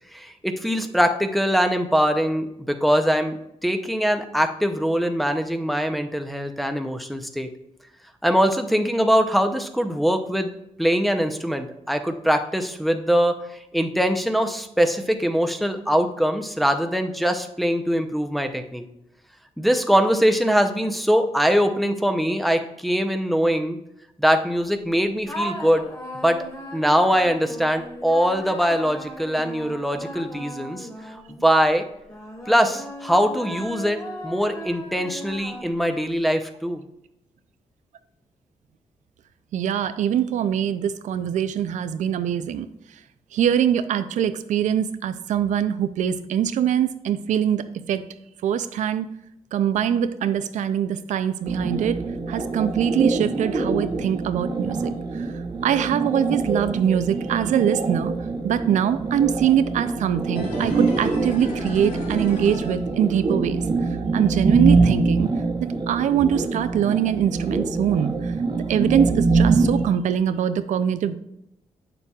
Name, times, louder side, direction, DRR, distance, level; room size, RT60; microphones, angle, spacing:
voice 1, 0.1-7.5 8.2-10.5 10.8-18.8 19.6-23.8 24.2-25.8 26.1-26.4 26.7-31.8 32.5-36.8, equal, ahead, 5 dB, 0.6 m, -22 dB
sound 1, 25.3-31.5 32.1-36.0, equal, 30° left, 2.2 m, -37 dB
voice 2, 39.5-42.7 43.3-48.0 48.4-49.1 49.5-52.0 52.3-55.3 55.6-58.1 58.4-63.6 64.1-65.3 65.6-68.3 68.7-71.2, right 9 dB, 90° right, 12 dB, 0.5 m, -23 dB
sound 2, 51.5-69.9, right 3 dB, 35° right, 1.0 m, -24 dB
sound 3, 60.3-63.5 63.8-63.9, left 1 dB, 80° left, 2.0 m, -34 dB
8.7 x 6.8 x 2.4 m, 0.82 s
cardioid pair, 105°, 12 cm